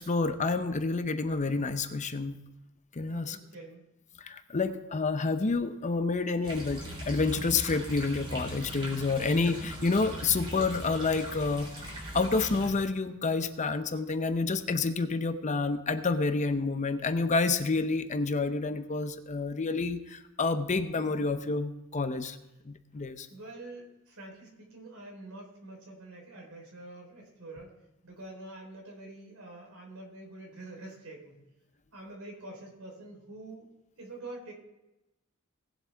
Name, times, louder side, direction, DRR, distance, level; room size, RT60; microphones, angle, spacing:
voice 1, 0.0-2.4 2.9-3.4 4.2-22.4 22.6-23.3, left 3 dB, 35° left, 10 dB, 0.6 m, -29 dB
voice 2, 3.0-3.8 23.3-27.7 28.0-31.4 31.9-33.7 34.0-34.5, right 2 dB, 75° right, 0 dB, 4.0 m, -46 dB
sound 1, 6.4-12.7, equal, 25° right, 3.8 m, -40 dB
18.5 x 7.5 x 3.5 m, 0.98 s
head